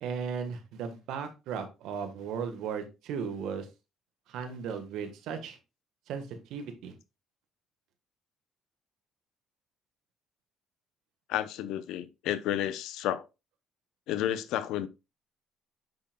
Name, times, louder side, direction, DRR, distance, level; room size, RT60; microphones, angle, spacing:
voice 1, 0.0-3.7 4.3-5.6 6.1-6.9, right 6 dB, 70° right, 1.3 m, -36 dB
voice 2, 11.3-13.3 14.1-14.9, left 12 dB, 75° left, 0.6 m, -31 dB
7.7 x 5.6 x 2.2 m
hypercardioid pair, 60°, 0 cm